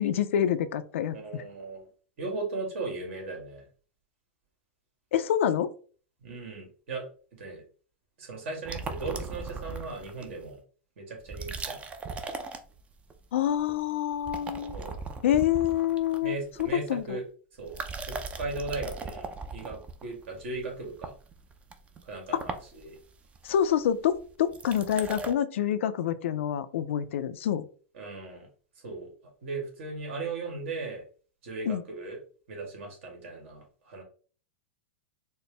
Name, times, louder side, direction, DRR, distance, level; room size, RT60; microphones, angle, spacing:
voice 1, 0.0-1.4 5.1-5.7 13.3-14.8 15.2-16.4 16.7-17.2 22.3-22.5 23.4-27.7 31.7-31.8, left 10 dB, 80° left, 13 dB, 0.4 m, -27 dB
voice 2, 1.1-1.9 2.2-3.7 6.2-7.0 7.4-7.6 8.2-10.6 11.0-11.8 14.7-14.9 16.2-17.2 17.6-17.7 18.4-21.1 22.0-23.0 27.9-28.5 28.8-29.1 29.4-31.0 31.4-32.2 32.5-34.0, right 3 dB, 70° right, 1 dB, 1.7 m, -37 dB
sound 1, 8.7-10.5 11.2-13.2 13.5-13.8 14.1-17.1 17.6-25.3, right 4 dB, 20° right, 0.4 m, -39 dB
4.3 x 2.0 x 3.2 m, 0.42 s
hypercardioid pair, 130°, 7 cm